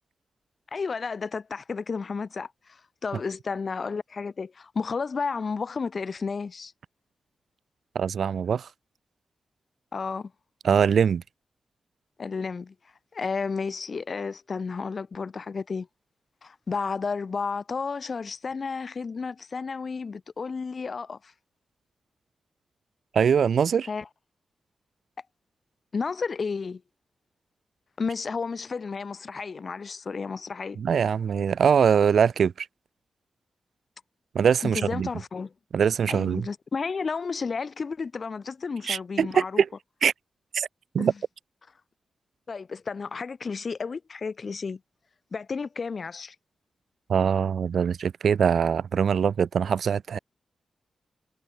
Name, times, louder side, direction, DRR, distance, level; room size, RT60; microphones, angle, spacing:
voice 1, 0.7-6.7 9.9-10.3 12.2-12.7 13.1-15.9 16.4-21.3 23.9-24.1 25.9-26.8 28.0-30.8 34.6-35.5 36.1-39.6 41.0-41.1 42.5-44.8 45.3-46.4, left 5 dB, 45° left, 3.4 m, -32 dB
voice 2, 8.0-8.7 10.6-11.2 23.1-23.9 30.8-32.7 34.4-35.1 35.7-36.5 38.9-39.7 40.0-40.1 40.5-40.7 40.9-41.1 47.1-50.2, right 7 dB, 70° right, 1.7 m, -22 dB
wide cardioid pair, 140°, 0 cm